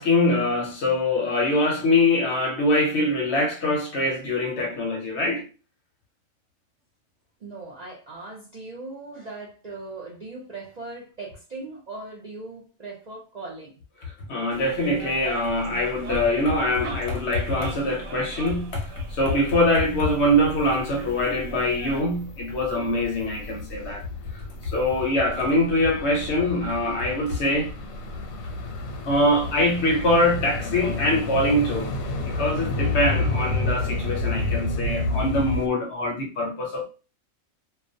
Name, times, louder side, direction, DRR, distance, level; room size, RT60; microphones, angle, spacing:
voice 1, 0.0-5.5 14.3-24.1 24.3-27.7 29.0-31.9 32.2-36.8, left 1 dB, 65° left, 0.8 m, -23 dB
voice 2, 7.4-13.8, right 3 dB, 55° right, 0.4 m, -39 dB
sound 1, 14.5-22.0, right 2 dB, 85° right, 1.0 m, -39 dB
sound 2, 18.9-35.7, left 2 dB, 85° left, 1.0 m, -31 dB
2.3 x 2.1 x 2.6 m
omnidirectional pair, 1.4 m